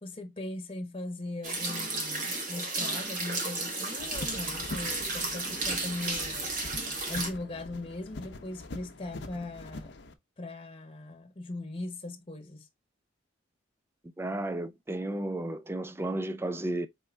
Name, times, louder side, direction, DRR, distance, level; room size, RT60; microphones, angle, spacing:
voice 1, 0.0-6.5 7.1-9.9 10.4-12.7, left 2 dB, 25° left, 0.9 m, -39 dB
sound 1, 1.4-7.3, right 2 dB, 40° right, 1.4 m, -33 dB
sound 2, 4.0-10.1, left 2 dB, 60° left, 0.7 m, -44 dB
voice 2, 14.2-16.9, right 1 dB, 10° right, 0.4 m, -33 dB
4.2 x 3.7 x 3.3 m
head